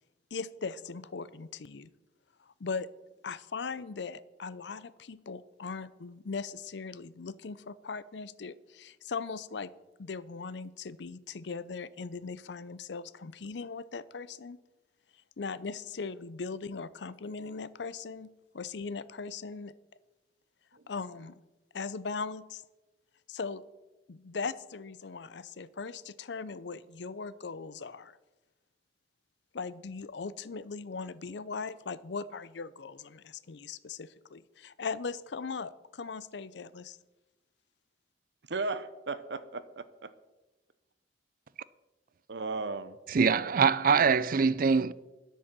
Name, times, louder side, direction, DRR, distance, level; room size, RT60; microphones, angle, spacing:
voice 1, 0.3-1.9 2.5-2.9 3.2-9.7 10.0-14.6 15.4-19.7 20.9-21.4 21.7-22.6 23.3-23.6 24.1-28.2 29.5-37.0, left 4 dB, 70° left, 0.6 m, -39 dB
voice 2, 38.5-40.1 42.3-43.0, right 3 dB, 70° right, 0.8 m, -35 dB
voice 3, 43.1-45.0, right 5 dB, 50° right, 0.4 m, -24 dB
10.5 x 8.2 x 7.4 m
head